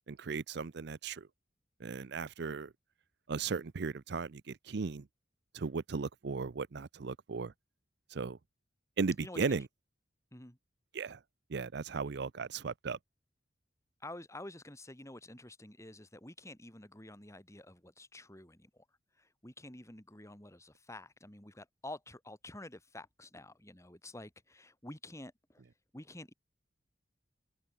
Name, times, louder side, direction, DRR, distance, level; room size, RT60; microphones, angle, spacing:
voice 1, 0.1-1.3 1.8-2.7 3.3-5.1 5.5-7.5 8.1-8.4 9.0-9.7 10.9-11.2 11.5-13.0, right 4 dB, 60° right, 0.6 m, -36 dB
voice 2, 9.2-9.6 10.3-10.6 14.0-18.9 19.2-25.6 25.9-26.3, left 1 dB, 15° left, 3.7 m, -49 dB
open air
head